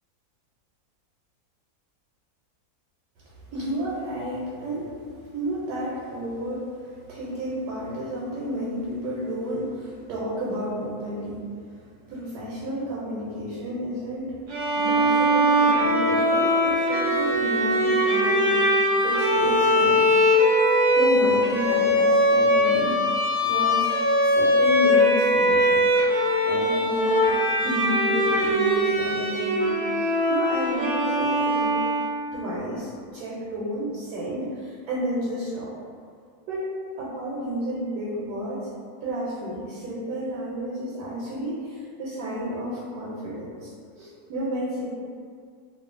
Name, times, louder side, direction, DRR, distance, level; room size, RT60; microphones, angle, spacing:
voice 1, 3.5-4.9 5.2-11.5 12.1-14.4 14.8-18.6 19.0-20.1 21.0-23.2 23.4-23.9 24.2-26.0 26.4-27.3 27.6-31.9 32.3-35.7 36.5-36.6 37.0-38.7 39.0-44.9, equal, 80° right, -7 dB, 1.1 m, -31 dB
Bowed string instrument, 14.5-32.3, equal, 65° right, 0.8 m, -21 dB
2.7 x 2.3 x 2.4 m, 2.2 s
omnidirectional pair, 1.7 m